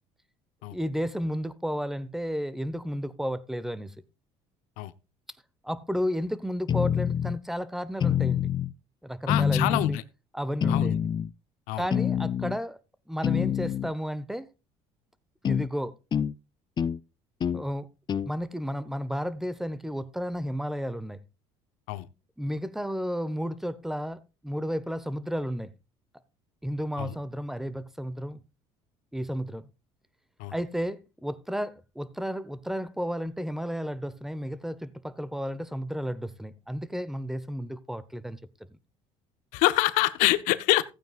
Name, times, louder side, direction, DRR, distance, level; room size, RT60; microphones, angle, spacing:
voice 1, 0.7-3.9 5.6-8.5 9.0-10.0 10.3-11.0 11.8-12.8 13.1-14.5 15.4-16.0 17.5-17.9 18.2-21.2 22.4-25.7 26.6-28.4 29.1-29.7 30.5-38.4, equal, 5° right, 1.0 m, -32 dB
sound 1, 6.7-7.4 8.0-8.7 9.3-10.0 10.6-11.3 11.9-12.6 13.2-13.9 15.4-15.7 16.1-16.3 16.8-17.0 17.4-17.6 18.1-18.3, left 8 dB, 35° left, 0.5 m, -26 dB
voice 2, 9.3-10.0 10.7-11.0 11.7-11.9 21.9-22.1 27.0-27.1 30.4-30.5 39.5-40.8, left 17 dB, 80° left, 0.8 m, -25 dB
15.5 x 9.0 x 2.4 m
supercardioid pair, 90°, 13 cm